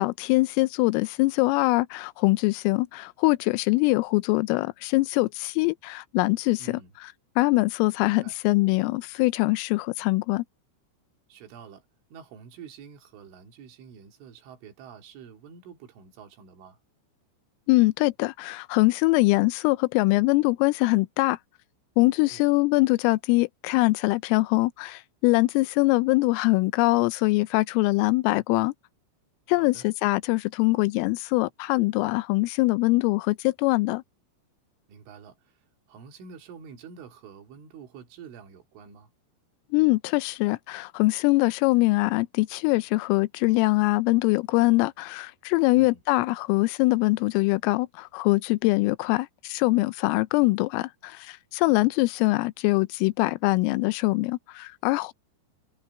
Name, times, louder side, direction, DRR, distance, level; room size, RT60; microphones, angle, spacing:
voice 1, 0.0-6.8 7.4-10.4 17.7-21.4 22.0-28.7 29.5-34.0 39.7-55.1, left 22 dB, 85° left, 3.1 m, -23 dB
voice 2, 6.6-6.9 8.0-8.4 11.3-16.8 22.1-22.4 29.5-29.9 34.9-39.1 45.7-46.0 51.6-51.9, right 6 dB, 70° right, 4.9 m, -47 dB
omnidirectional pair, 5.9 m